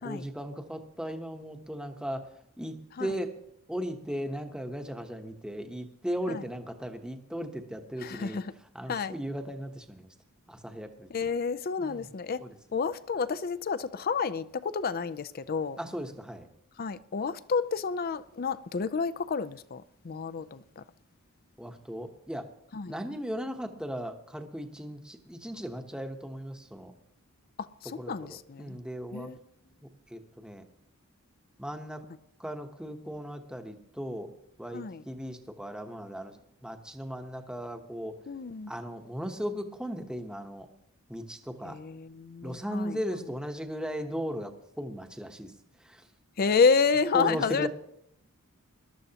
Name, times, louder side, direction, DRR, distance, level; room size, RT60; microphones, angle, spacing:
voice 1, 0.0-2.3 2.6-3.3 3.7-8.4 8.7-10.1 10.5-11.3 11.8-12.1 12.4-12.5 15.8-16.5 21.6-22.5 22.8-26.9 28.0-29.3 29.8-30.6 31.6-32.0 32.4-34.3 34.6-38.2 38.7-40.7 41.1-41.8 42.4-44.5 44.8-45.5 45.8-46.1 47.1-47.7, equal, 5° right, 0.9 m, -37 dB
voice 2, 8.0-8.5 8.9-9.1 11.1-12.4 12.7-15.8 16.8-20.8 22.7-22.9 27.6-28.8 29.1-29.4 34.7-35.0 38.3-38.7 41.6-43.0 46.4-47.7, left 5 dB, 45° left, 0.5 m, -30 dB
21.0 x 12.5 x 2.9 m
head